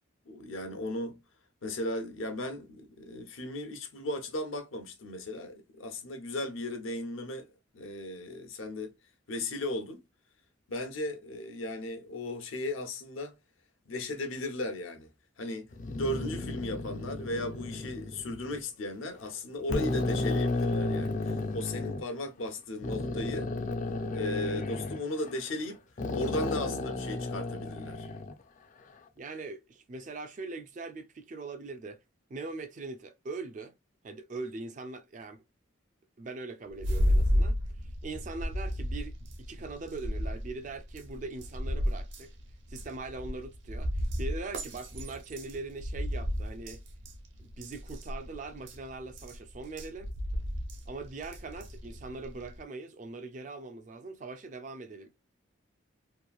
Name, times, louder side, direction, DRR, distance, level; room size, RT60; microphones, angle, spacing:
voice 1, 0.3-1.2 1.6-8.9 9.3-10.0 10.7-13.4 13.9-15.1 15.4-23.5 24.1-25.8 26.1-28.1, left 1 dB, 80° left, 0.8 m, -36 dB
sound 1, 15.7-18.6 19.2-19.3 19.7-22.0 22.8-25.7 26.0-28.3, left 2 dB, 40° left, 0.3 m, -33 dB
voice 2, 29.2-32.0 32.3-33.7 34.0-35.4 36.2-37.6 37.8-42.3 42.7-46.8 47.4-50.1 50.9-55.1, right 3 dB, 40° right, 0.3 m, -41 dB
sound 2, 36.7-52.6, equal, 65° right, 0.7 m, -33 dB
3.0 x 2.4 x 2.3 m
head